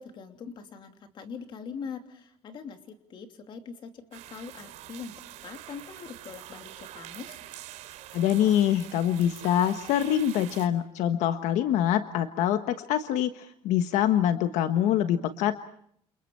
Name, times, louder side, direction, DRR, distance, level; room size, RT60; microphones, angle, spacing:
voice 1, 0.0-5.2 5.4-7.4, left 6 dB, 40° left, 5 dB, 2.9 m, -42 dB
sound 1, 4.1-10.7, right 14 dB, 80° right, 3.3 m, -45 dB
voice 2, 8.1-15.6, left 10 dB, 75° left, 8 dB, 1.3 m, -25 dB
29.0 x 28.5 x 4.6 m, 0.66 s
cardioid pair, 170°, 12 cm